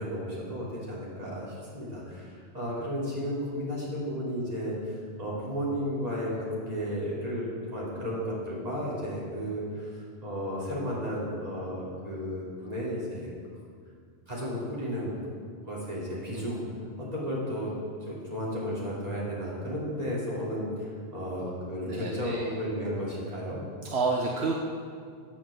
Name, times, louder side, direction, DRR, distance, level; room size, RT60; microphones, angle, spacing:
voice 1, 0.0-9.9 10.2-13.3 14.3-15.1 15.6-16.6 17.0-17.7 18.1-23.6, equal, 35° right, -7 dB, 3.2 m, -33 dB
voice 2, 21.9-22.5 23.8-24.5, right 3 dB, 75° right, -1 dB, 1.1 m, -29 dB
8.5 x 7.4 x 7.4 m, 2.1 s
omnidirectional pair, 1.1 m